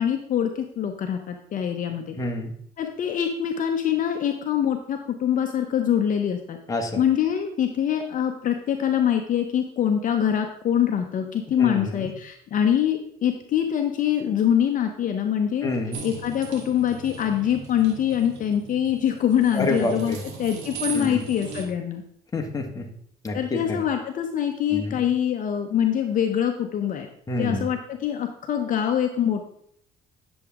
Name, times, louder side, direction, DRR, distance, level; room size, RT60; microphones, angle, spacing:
voice 1, 0.0-2.2 2.8-6.6 7.0-15.7 16.0-22.0 23.3-27.1 27.4-29.4, left 9 dB, 50° left, 5 dB, 0.9 m, -24 dB
voice 2, 2.2-2.5 6.7-7.0 11.6-12.1 15.6-16.0 19.5-20.2 20.9-21.2 22.3-22.8 23.2-23.8 24.7-25.0 27.3-27.7, left 2 dB, 20° left, 2 dB, 1.5 m, -28 dB
sound 1, 15.9-21.7, right 5 dB, 90° right, 1.8 m, -38 dB
9.8 x 7.1 x 3.6 m, 0.68 s
cardioid pair, 110°, 17 cm